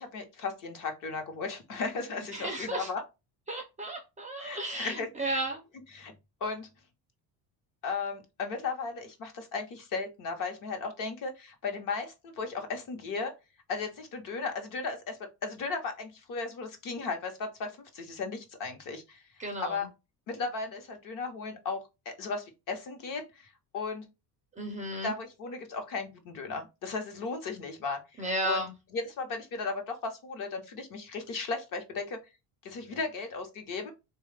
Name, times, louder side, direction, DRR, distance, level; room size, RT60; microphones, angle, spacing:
voice 1, 0.0-3.0 4.4-5.4 5.9-6.1 6.4-6.7 7.8-13.3 13.7-19.2 19.6-19.9 20.3-23.5 23.7-24.0 25.0-28.6 28.9-32.2 32.6-33.9, left 4 dB, 50° left, 0.9 m, -36 dB
voice 2, 2.3-2.9 3.5-5.6 19.4-19.9 24.6-25.1 28.2-28.7, right 1 dB, 20° right, 0.4 m, -34 dB
3.7 x 2.3 x 3.2 m
cardioid pair, 170°, 41 cm